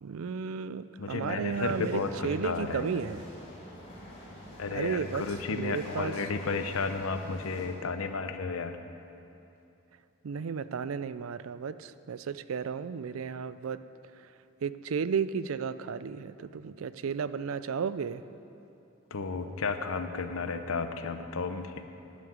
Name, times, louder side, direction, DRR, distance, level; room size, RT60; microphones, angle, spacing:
voice 1, 0.0-3.2 4.7-5.2 5.5-6.1 10.2-13.8 14.6-18.2, right 6 dB, 75° right, 14 dB, 0.4 m, -33 dB
voice 2, 1.0-3.0 4.6-8.8 19.1-21.7, left 4 dB, 80° left, 8 dB, 0.8 m, -33 dB
sound 1, 1.5-7.7, left 1 dB, 25° left, 2.6 m, -47 dB
12.0 x 6.4 x 9.4 m, 2.8 s
head